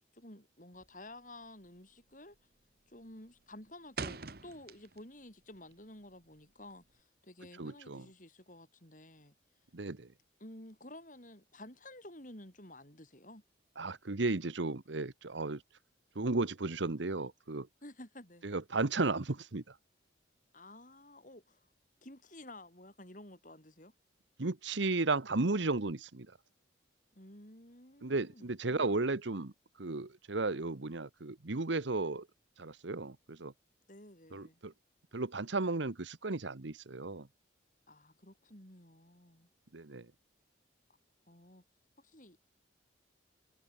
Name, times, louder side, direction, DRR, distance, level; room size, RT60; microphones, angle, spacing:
voice 1, 0.1-2.4 2.9-9.3 10.4-13.4 17.8-18.5 20.5-21.7 22.0-23.9 27.1-29.0 33.9-34.6 37.9-39.5 41.3-41.6 42.0-42.4, left 1 dB, 40° left, 6.5 m, -52 dB
sound 1, 0.7-1.1 1.4-1.8 2.1-2.6 2.9-5.2 5.5-7.0, right 4 dB, 50° right, 1.5 m, -44 dB
voice 2, 7.6-8.0 9.7-10.1 13.8-15.6 16.1-17.7 18.4-19.7 24.4-26.3 28.0-29.5 29.8-32.3 32.6-33.5 34.3-34.7 35.1-37.3 39.7-40.1, right 3 dB, 75° right, 1.1 m, -34 dB
head